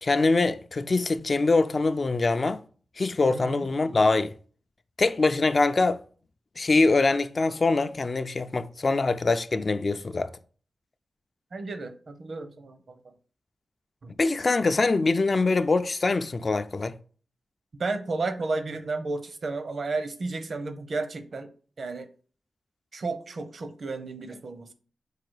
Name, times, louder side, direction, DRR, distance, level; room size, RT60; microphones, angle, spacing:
voice 1, 0.0-2.6 3.0-4.3 5.0-6.0 6.6-10.3 14.2-16.9, left 3 dB, 50° left, 0.4 m, -23 dB
voice 2, 3.3-3.7 11.5-13.1 14.0-14.1 17.8-21.5 21.8-22.1 22.9-24.7, right 3 dB, 65° right, 0.7 m, -33 dB
4.8 x 2.3 x 4.5 m
cardioid pair, 55°, 0 cm